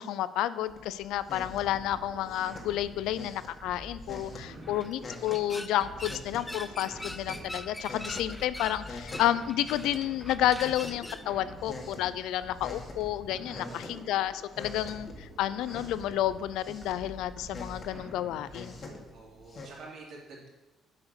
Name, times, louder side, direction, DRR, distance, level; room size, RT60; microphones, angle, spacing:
voice 1, 0.0-18.7, left 12 dB, 85° left, 15 dB, 0.4 m, -31 dB
sound 1, 0.7-19.8, left 3 dB, 45° left, 1.7 m, -47 dB
sound 2, 1.4-19.0, right 1 dB, 15° right, 1.7 m, -48 dB
voice 2, 4.2-4.8 13.5-13.9 19.1-20.5, right 3 dB, 70° right, -4 dB, 3.3 m, -48 dB
sound 3, 4.6-11.3, left 1 dB, 10° left, 0.5 m, -43 dB
8.2 x 4.9 x 6.6 m, 1.1 s
cardioid pair, 110°, 0 cm